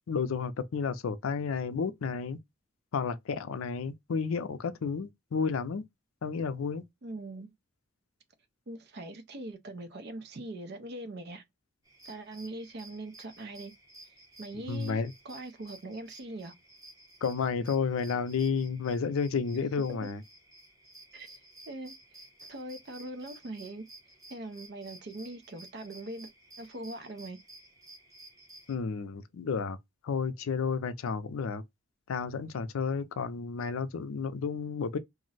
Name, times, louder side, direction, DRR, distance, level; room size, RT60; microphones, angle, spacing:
voice 1, 0.1-2.4 2.9-5.8 6.2-6.8 14.7-15.1 17.2-20.2 28.7-29.8 30.0-31.6 32.1-35.0, left 5 dB, 80° left, 0.4 m, -31 dB
voice 2, 7.0-7.5 8.7-11.4 12.0-13.7 14.4-16.5 19.9-20.1 21.1-23.8 24.3-26.3 26.6-27.4, right 2 dB, 50° right, 0.5 m, -42 dB
sound 1, 11.9-28.8, right 1 dB, 15° right, 0.8 m, -54 dB
2.5 x 2.0 x 3.8 m
head